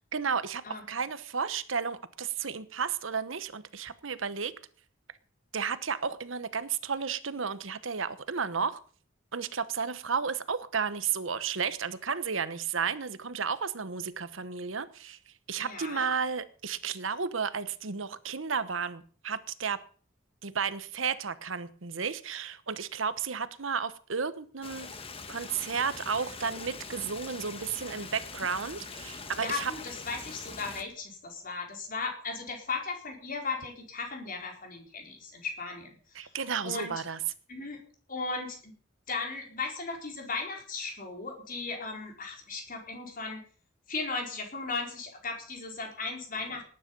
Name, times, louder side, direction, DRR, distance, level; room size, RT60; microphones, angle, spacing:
voice 1, 0.1-4.5 5.5-8.8 9.3-15.2 15.5-19.8 20.4-24.9 25.3-29.7 36.1-37.2, right 6 dB, 85° right, 1.1 m, -33 dB
voice 2, 15.6-16.1 29.3-36.3 36.6-36.9 37.5-37.8 38.1-38.7 39.1-43.4 43.9-46.6, left 4 dB, 45° left, 4.4 m, -36 dB
Stream, 24.6-30.8, left 4 dB, 30° left, 1.5 m, -43 dB
18.5 x 10.0 x 5.4 m
head